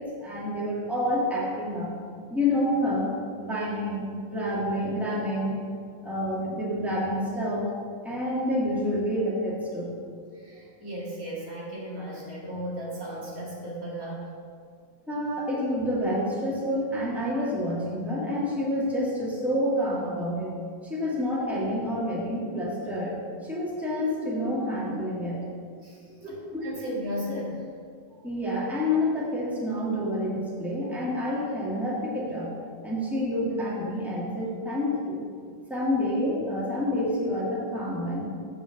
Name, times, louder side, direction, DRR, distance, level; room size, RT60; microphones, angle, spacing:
voice 1, 0.0-1.9 2.3-3.1 3.4-5.5 6.0-7.7 8.0-10.0 15.1-20.5 20.8-23.2 23.4-25.4 26.2-26.7 28.2-32.6 32.8-35.2 35.7-38.2, left 1 dB, ahead, -6 dB, 2.0 m, -28 dB
voice 2, 10.3-14.3 25.8-26.4 26.6-27.7, equal, 85° right, -6 dB, 2.7 m, -35 dB
8.0 x 5.6 x 6.5 m, 2.1 s
omnidirectional pair, 1.4 m